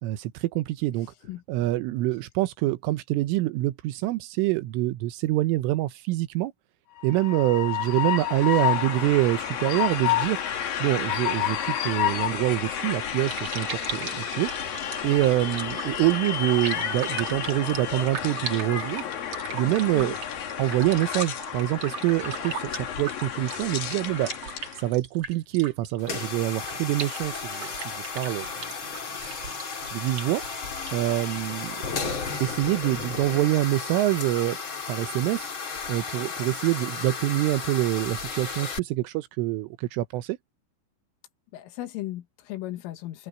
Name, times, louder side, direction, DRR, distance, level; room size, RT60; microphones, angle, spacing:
voice 1, 0.0-1.1 1.5-6.5 7.0-10.4 10.8-14.5 15.0-19.1 19.5-20.2 20.6-24.3 24.8-28.5 29.9-30.4 30.9-34.6 34.9-35.5 35.9-40.4, right 16 dB, 80° right, 3.4 m, -26 dB
Train, 7.0-24.8, left 10 dB, 55° left, 3.4 m, -30 dB
sound 1, 13.0-32.2, right 6 dB, 60° right, 1.4 m, -40 dB
sound 2, 26.0-38.8, left 5 dB, 35° left, 2.1 m, -34 dB
voice 2, 41.5-43.3, left 15 dB, 80° left, 4.0 m, -36 dB
omnidirectional pair, 5.9 m